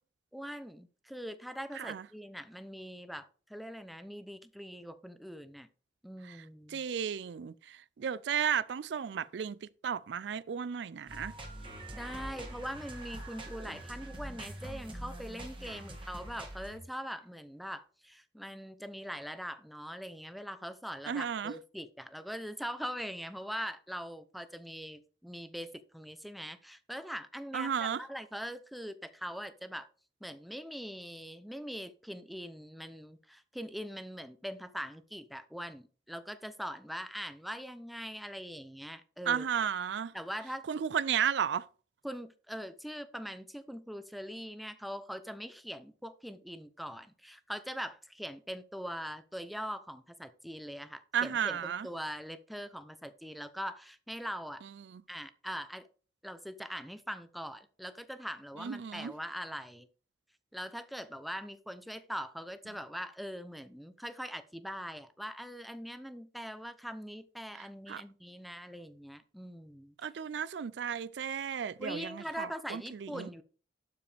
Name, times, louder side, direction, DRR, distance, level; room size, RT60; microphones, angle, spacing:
voice 1, 0.3-5.7 6.0-6.8 11.9-29.9 30.2-39.5 40.1-40.6 42.0-54.6 55.1-55.9 56.2-59.9 60.5-69.9 71.8-73.4, equal, ahead, 0.7 m, -42 dB
voice 2, 6.7-11.3 21.1-21.5 27.5-28.0 39.3-40.1 40.7-41.7 51.1-51.9 54.9-55.0 58.6-59.1 67.9-68.0 70.0-73.3, right 8 dB, 70° right, 0.4 m, -34 dB
sound 1, 11.1-16.8, right 1 dB, 30° right, 2.1 m, -44 dB
12.0 x 5.0 x 3.4 m
head